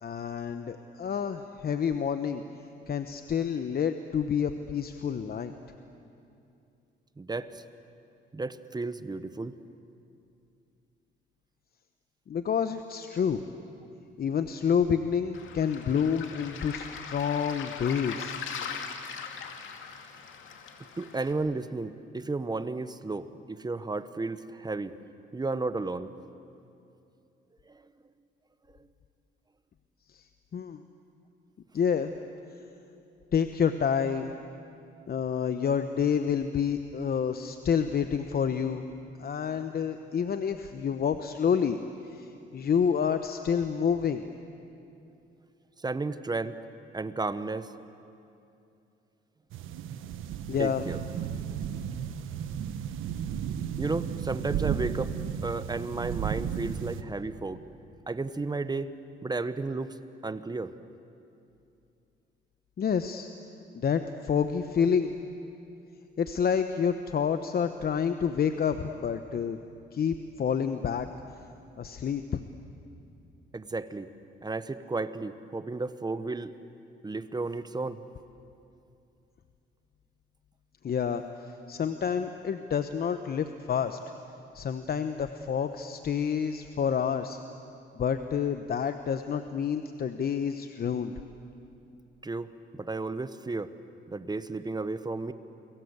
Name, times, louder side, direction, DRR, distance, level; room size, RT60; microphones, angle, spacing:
voice 1, 0.0-2.4 2.9-5.5 12.3-13.4 14.2-18.4 30.1-30.2 30.5-30.8 31.7-32.1 33.3-34.3 35.1-38.9 39.2-41.8 42.0-44.2 50.5-50.8 62.8-63.3 63.7-65.1 66.2-69.6 69.9-71.1 71.8-72.4 80.8-81.2 81.7-84.0 84.5-87.4 87.9-91.1, left 7 dB, 50° left, 9 dB, 1.1 m, -28 dB
voice 2, 7.2-7.6 8.3-9.6 21.0-24.9 25.3-26.1 27.7-27.8 28.8-28.9 45.8-46.6 46.9-47.7 50.6-51.0 53.3-53.4 53.8-55.1 55.4-57.6 58.1-58.9 59.2-60.0 60.2-60.7 73.5-74.1 74.4-76.5 77.0-78.0 92.2-93.7 94.1-95.3, right 3 dB, 20° right, 12 dB, 1.1 m, -33 dB
Waves surf, 15.3-21.3, left 6 dB, 75° left, 2.5 m, -40 dB
sound 1, 49.5-57.0, right 8 dB, 85° right, 1.3 m, -34 dB
29.5 x 22.5 x 8.2 m, 2.7 s
cardioid pair, 90°, 20 cm